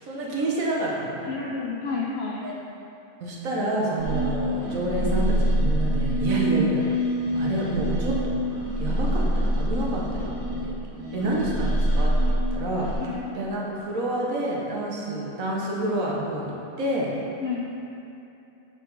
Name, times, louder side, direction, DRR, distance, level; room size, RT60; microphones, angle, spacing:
voice 1, 0.0-1.3 2.4-2.5 3.2-6.8 7.3-8.3 8.8-10.7 11.1-12.1 12.5-12.9 13.3-16.5 16.8-17.1, right 2 dB, 65° right, -3 dB, 1.4 m, -28 dB
voice 2, 1.3-2.5 11.1-11.3 13.0-13.4 17.4-17.7, left 4 dB, 70° left, -2 dB, 0.6 m, -31 dB
sound 1, 4.0-12.9, equal, 45° left, 1.6 m, -25 dB
6.4 x 5.0 x 3.9 m, 2.8 s
omnidirectional pair, 1.6 m